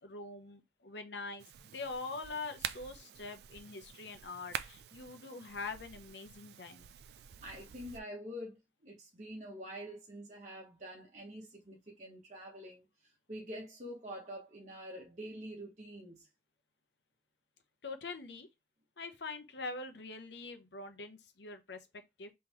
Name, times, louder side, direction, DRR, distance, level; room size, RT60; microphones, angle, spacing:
voice 1, 0.0-1.5 1.7-6.9 17.8-18.5 19.0-22.3, left 3 dB, 80° left, 0.8 m, -44 dB
sound 1, 1.4-8.0, right 9 dB, 65° right, 0.3 m, -47 dB
voice 2, 7.4-16.3, equal, 40° right, 1.1 m, -46 dB
3.8 x 3.2 x 3.1 m
head